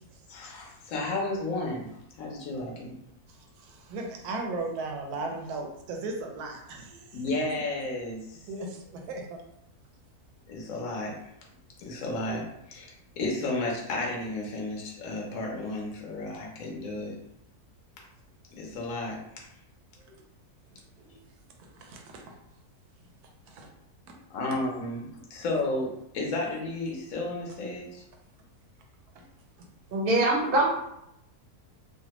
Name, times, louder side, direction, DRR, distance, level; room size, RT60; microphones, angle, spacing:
voice 1, 0.3-2.9 7.1-8.5 10.5-11.2 11.8-17.2 18.5-19.5 24.3-28.0, left 2 dB, 65° left, -1 dB, 1.1 m, -33 dB
voice 2, 3.3-7.2 8.5-9.4 21.6-22.3 23.5-23.7 24.5-24.6, right 3 dB, 85° right, 2 dB, 1.1 m, -37 dB
voice 3, 29.9-30.7, right 2 dB, 55° right, -2 dB, 0.6 m, -23 dB
3.2 x 2.1 x 2.9 m, 0.79 s
omnidirectional pair, 1.6 m